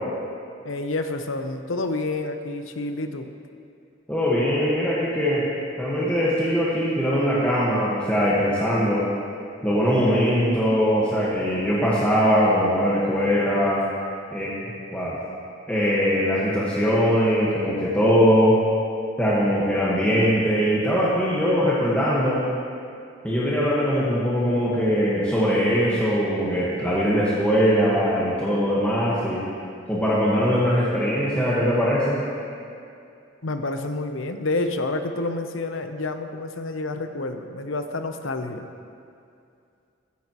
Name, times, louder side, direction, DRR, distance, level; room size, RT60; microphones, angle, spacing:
voice 1, 0.6-3.3 33.4-38.7, left 2 dB, 80° left, 7 dB, 0.8 m, -29 dB
voice 2, 4.1-5.4 5.8-9.0 9.6-13.8 14.3-14.5 14.9-15.1 15.7-18.5 19.2-22.4 23.2-29.4 29.9-32.2, equal, 10° left, -9 dB, 1.5 m, -21 dB
15.5 x 14.0 x 3.1 m, 2.4 s
head